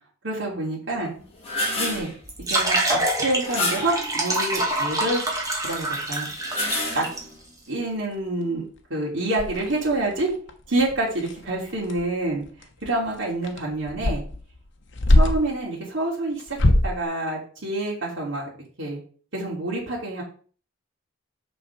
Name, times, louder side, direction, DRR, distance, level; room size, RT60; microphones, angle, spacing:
voice 1, 0.2-1.1 1.8-2.1 2.5-5.2 5.6-6.3 6.9-7.0 7.7-8.6 8.9-10.3 10.7-12.4 12.8-14.2 15.1-16.6 16.8-18.5 18.8-19.0 19.3-20.2, right 2 dB, 65° right, -5 dB, 3.1 m, -27 dB
sound 1, 1.2-2.1 3.4-4.1 6.3-7.3, left 2 dB, 30° left, 2.8 m, -28 dB
sound 2, 2.2-7.2, right 1 dB, 20° right, 2.2 m, -26 dB
sound 3, 4.6-6.0 6.6-6.7 6.9-7.2 7.5-7.6 7.9-8.4 8.8-8.9 9.4-15.6 16.4-17.0, left 1 dB, 65° left, 1.2 m, -25 dB
6.6 x 6.3 x 5.2 m, 0.42 s
head